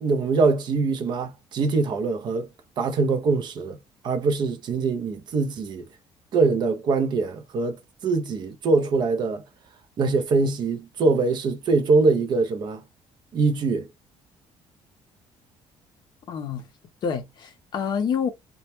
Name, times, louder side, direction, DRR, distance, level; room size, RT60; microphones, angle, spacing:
voice 1, 0.0-2.5 2.8-3.8 4.0-5.8 6.3-9.4 10.0-12.8 13.3-13.9, right 4 dB, 40° right, 0.4 m, -23 dB
voice 2, 16.3-16.6 17.0-18.3, left 7 dB, 40° left, 0.5 m, -27 dB
2.1 x 2.1 x 2.8 m
cardioid pair, 165°, 11 cm